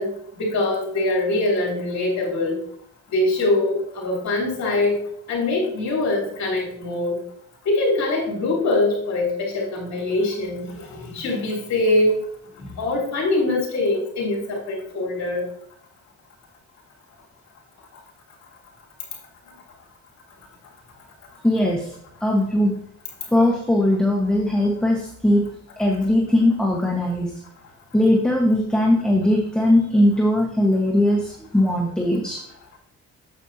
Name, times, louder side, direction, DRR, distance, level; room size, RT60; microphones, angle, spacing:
voice 1, 0.0-2.6 3.1-5.0 5.3-7.2 7.7-12.2 12.6-15.5, left 2 dB, 65° left, -4 dB, 3.5 m, -23 dB
voice 2, 21.4-21.9 22.2-22.7 23.3-25.5 25.8-27.3 27.9-32.4, left 1 dB, 5° left, -2 dB, 1.5 m, -19 dB
8.9 x 8.1 x 2.9 m, 0.67 s
cardioid pair, 90°, 30 cm